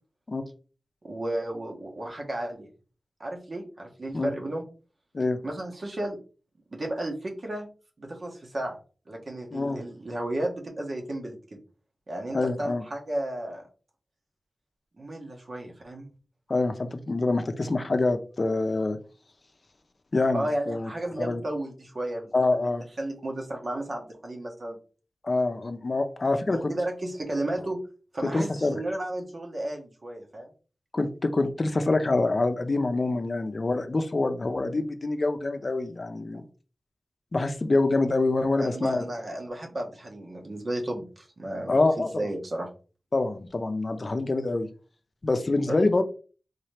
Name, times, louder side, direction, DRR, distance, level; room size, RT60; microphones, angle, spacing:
voice 1, 1.0-2.7 3.2-4.6 5.4-6.2 6.7-7.7 8.0-8.8 9.1-11.6 12.1-13.6 15.0-16.1 20.3-22.7 23.0-24.8 26.7-27.8 28.1-30.5 36.3-36.4 38.6-42.7 45.7-45.8, right 1 dB, 55° right, 1.1 m, -33 dB
voice 2, 9.5-9.8 12.3-12.8 16.5-19.0 20.1-20.9 21.2-21.4 22.3-22.8 25.2-26.7 28.2-28.8 30.9-36.4 37.3-39.1 41.7-42.1 43.1-44.7 45.2-46.0, left 2 dB, 50° left, 0.5 m, -26 dB
3.9 x 2.8 x 3.3 m
wide cardioid pair, 65°, 0 cm